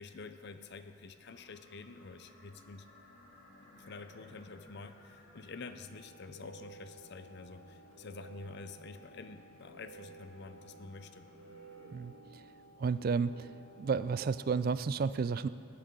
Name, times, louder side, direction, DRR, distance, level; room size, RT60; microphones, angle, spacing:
voice 1, 0.0-2.9 3.8-11.2, left 4 dB, 50° left, 9 dB, 0.6 m, -48 dB
sound 1, 1.3-12.0, left 1 dB, 75° left, 2.9 m, -62 dB
sound 2, 5.8-14.6, right 2 dB, 80° right, 2.0 m, -55 dB
voice 2, 12.8-13.5 13.8-15.5, right 5 dB, 45° right, 15 dB, 0.3 m, -31 dB
18.5 x 12.0 x 3.8 m, 2.4 s
head